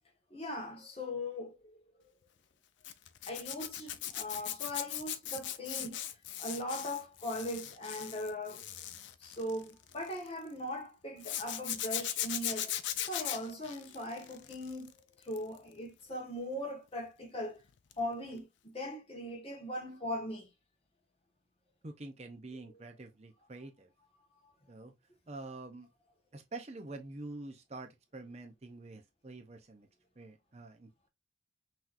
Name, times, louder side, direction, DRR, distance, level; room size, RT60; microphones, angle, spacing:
voice 1, 0.3-1.8 3.3-6.0 6.4-8.7 9.2-12.7 13.1-14.9 15.2-17.6 18.0-18.5 18.7-20.5 22.6-22.7, left 1 dB, 30° left, 1.5 m, -39 dB
Zipper (clothing), 2.8-10.3 11.2-14.9 15.2-15.6 17.9-18.1 18.3-18.4, left 11 dB, 70° left, 0.5 m, -39 dB
voice 2, 21.8-23.9 24.7-24.9 25.3-25.9 26.3-29.9 30.2-31.1, right 2 dB, 35° right, 0.6 m, -47 dB
5.9 x 3.0 x 2.5 m
head